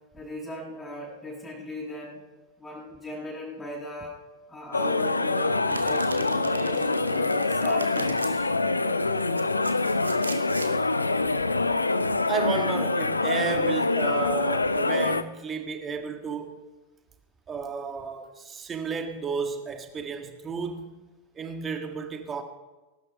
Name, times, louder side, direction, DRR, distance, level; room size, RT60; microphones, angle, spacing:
voice 1, 0.1-2.2 2.6-4.1 4.5-8.5, left 1 dB, 10° left, 6.3 m, -38 dB
sound 1, 4.7-15.2, left 3 dB, 80° left, 0.6 m, -25 dB
Domestic sounds home sounds, 5.7-8.3 9.1-10.7, right 4 dB, 75° right, 1.3 m, -39 dB
voice 2, 12.3-16.6 17.5-22.4, right 5 dB, 20° right, 1.8 m, -32 dB
20.0 x 12.0 x 4.6 m
figure-of-eight pair, 90°, 0 cm